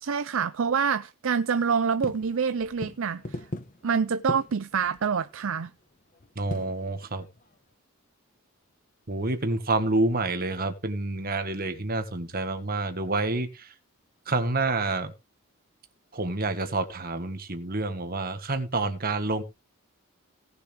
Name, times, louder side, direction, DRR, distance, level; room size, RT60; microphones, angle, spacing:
voice 1, 0.0-3.5 3.8-5.7, right 6 dB, 60° right, 0.5 m, -26 dB
sound 1, 1.8-7.7, left 1 dB, 35° left, 1.1 m, -40 dB
voice 2, 6.3-7.3 9.1-13.7 14.3-15.1 16.1-19.4, right 2 dB, 40° right, 1.6 m, -28 dB
18.0 x 7.0 x 3.4 m
head